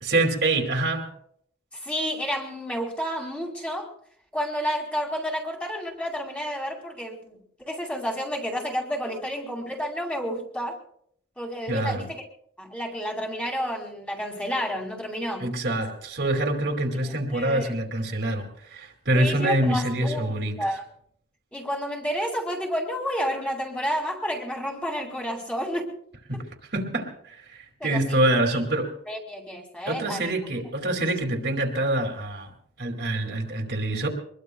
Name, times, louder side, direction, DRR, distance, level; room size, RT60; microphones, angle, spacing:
voice 1, 0.0-1.1 11.7-12.0 15.4-20.6 26.3-26.4 26.7-28.9 29.9-32.5 32.8-34.1, right 1 dB, 60° right, 3 dB, 2.4 m, -25 dB
voice 2, 1.7-3.9 4.3-10.8 11.4-12.2 12.6-15.5 17.0-17.7 19.1-20.8 21.5-25.9 27.8-28.2 28.5-28.6 29.1-30.3, equal, 5° left, 0 dB, 2.5 m, -30 dB
24.0 x 21.0 x 2.3 m, 0.66 s
head